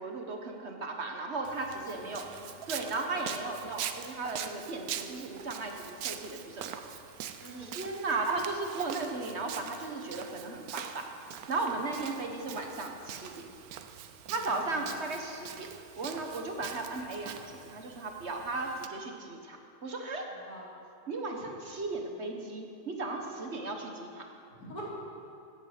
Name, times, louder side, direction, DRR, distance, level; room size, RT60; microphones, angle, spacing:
voice 1, 0.0-2.3 2.7-6.8 7.6-11.1 11.5-13.3 14.3-15.7 16.0-19.6 19.8-20.3 21.1-24.3, right 3 dB, 50° right, 3 dB, 1.4 m, -36 dB
Walk footsteps, 1.4-18.9, right 9 dB, 75° right, 1.1 m, -43 dB
voice 2, 1.9-2.5 3.0-3.1 7.4-7.8 14.2-14.9 20.3-20.6 24.5-24.8, right 2 dB, 85° left, -6 dB, 3.9 m, -48 dB
16.5 x 8.1 x 6.6 m, 2.6 s
omnidirectional pair, 1.6 m